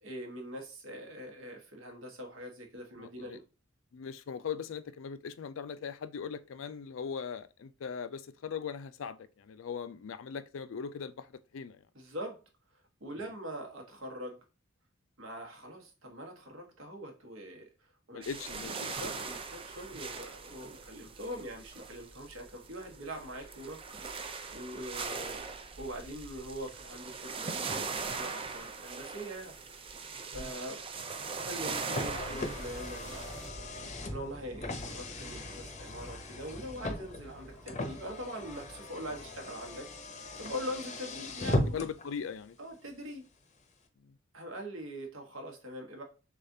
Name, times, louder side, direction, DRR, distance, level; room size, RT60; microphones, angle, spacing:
voice 1, 0.0-3.4 11.9-12.4 13.0-14.4 15.2-17.7 18.1-18.3 18.8-23.8 24.5-25.4 25.8-29.5 30.3-30.8 31.2-33.5 34.1-39.9 40.4-41.8 42.6-43.2 44.3-46.0, equal, 75° right, 1.3 m, -43 dB
voice 2, 3.0-3.4 3.9-11.8 13.2-13.3 18.1-19.0 30.3-30.5 41.7-42.6 44.0-44.2, left 6 dB, 70° left, 0.4 m, -40 dB
sound 1, 18.2-33.5, right 4 dB, 25° right, 0.4 m, -40 dB
Car, 31.4-42.1, left 1 dB, 35° left, 0.7 m, -38 dB
sound 2, 32.0-42.0 42.2-42.5, equal, 5° left, 0.8 m, -50 dB
6.5 x 2.4 x 2.7 m
head